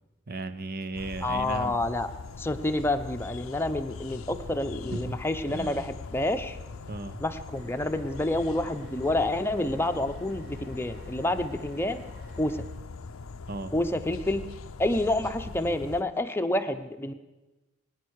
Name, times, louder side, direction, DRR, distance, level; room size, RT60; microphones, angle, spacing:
voice 1, 0.3-1.8 4.9-5.2 5.5-5.9 6.9-7.2 13.5-13.7, right 2 dB, 45° right, 12 dB, 0.9 m, -35 dB
sound 1, 0.9-16.0, left 4 dB, 80° left, 0.6 m, -41 dB
voice 2, 1.2-2.1 2.4-6.6 7.2-12.0 12.4-12.6 13.7-14.4 14.8-17.1, left 1 dB, 10° left, 6 dB, 0.8 m, -28 dB
sound 2, 7.5-12.6, equal, 70° right, 4.9 m, -53 dB
23.0 x 9.6 x 6.5 m, 1.1 s
head